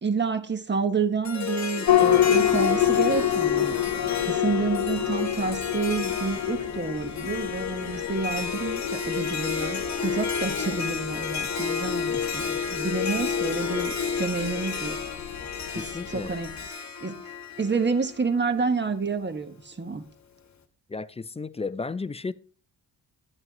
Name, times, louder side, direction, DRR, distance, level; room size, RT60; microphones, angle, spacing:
voice 1, 0.0-3.8 4.3-15.0 15.7-16.5 17.0-17.1 17.6-20.0, right 4 dB, 25° right, 1.3 m, -29 dB
Harp, 1.2-18.5, left 6 dB, 45° left, 1.3 m, -31 dB
sound 1, 1.9-16.7, left 11 dB, 65° left, 1.0 m, -28 dB
voice 2, 15.7-16.3 20.9-22.3, left 4 dB, 15° left, 0.4 m, -33 dB
11.0 x 7.9 x 3.0 m
cardioid pair, 70°, 40 cm